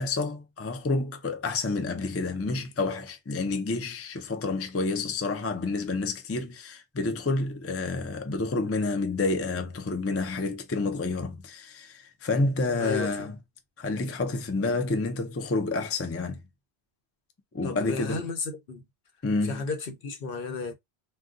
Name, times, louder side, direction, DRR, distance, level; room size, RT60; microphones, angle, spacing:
voice 1, 0.0-13.3 13.8-16.4 17.5-18.2 19.2-19.6, left 3 dB, 25° left, 0.3 m, -29 dB
voice 2, 12.8-13.3 17.6-18.8 19.4-20.7, left 4 dB, 60° left, 0.8 m, -33 dB
2.6 x 2.2 x 3.6 m
omnidirectional pair, 1.1 m